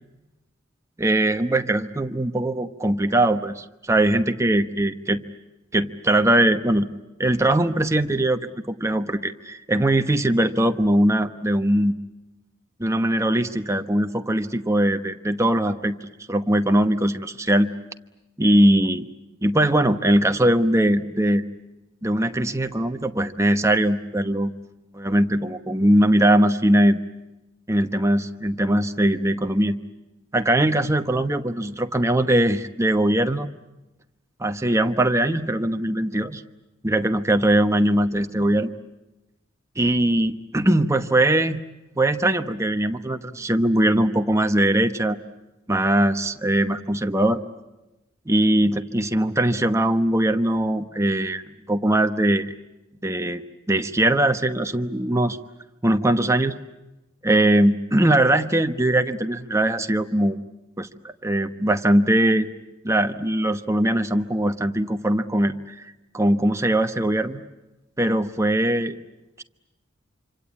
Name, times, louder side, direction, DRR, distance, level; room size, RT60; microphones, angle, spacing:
voice 1, 1.0-5.2 5.7-6.9 7.2-8.4 8.7-11.9 12.8-16.0 16.3-17.7 18.4-19.1 19.4-21.4 22.0-24.5 24.9-27.0 27.7-29.8 30.3-33.5 34.4-36.4 36.8-38.7 39.8-41.6 42.0-45.2 45.7-47.4 48.3-51.4 51.7-52.5 53.0-53.4 53.7-55.4 55.8-56.6 57.2-60.4 60.8-60.9 61.2-62.5 62.8-65.5 66.1-67.4 68.0-68.9 69.4-69.5, right 1 dB, 15° right, 7 dB, 1.0 m, -21 dB
26.5 x 26.0 x 8.5 m, 1.0 s
head